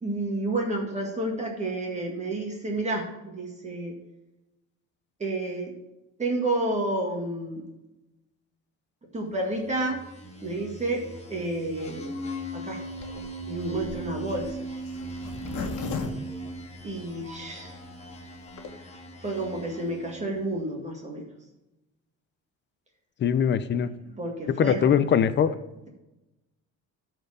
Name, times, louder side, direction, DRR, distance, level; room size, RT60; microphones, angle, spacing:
voice 1, 0.0-4.0 5.2-5.7 6.2-7.6 9.1-10.0 10.4-11.0 11.3-12.1 12.5-12.8 13.5-14.6 16.8-17.8 18.8-18.9 19.2-21.3 24.2-24.8, right 2 dB, 20° right, 0 dB, 1.9 m, -30 dB
sound 1, 9.6-20.5, right 2 dB, 20° left, 1.4 m, -39 dB
Zipper (clothing), 13.0-17.3 17.8-17.9 18.0-18.1 18.4-18.7, left 5 dB, 65° left, 1.7 m, -36 dB
voice 2, 23.2-23.9 24.5-25.6, left 8 dB, 35° left, 13 dB, 0.6 m, -22 dB
13.0 x 4.6 x 4.9 m, 0.97 s
cardioid pair, 150°, 31 cm